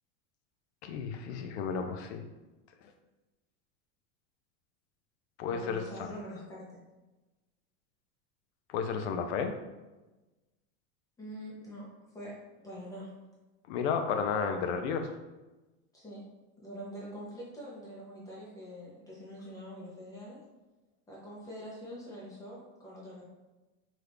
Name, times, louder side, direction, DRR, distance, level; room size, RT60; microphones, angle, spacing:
voice 1, 0.8-2.2 5.4-6.1 8.7-9.5 13.7-15.1, left 6 dB, 70° left, 6 dB, 0.5 m, -32 dB
voice 2, 5.4-6.8 11.2-11.9 12.1-12.3 12.6-13.1 15.9-16.2 16.6-20.4 21.1-23.2, equal, 10° left, -5 dB, 0.6 m, -44 dB
3.0 x 2.4 x 3.3 m, 1.1 s
supercardioid pair, 160°, 34 cm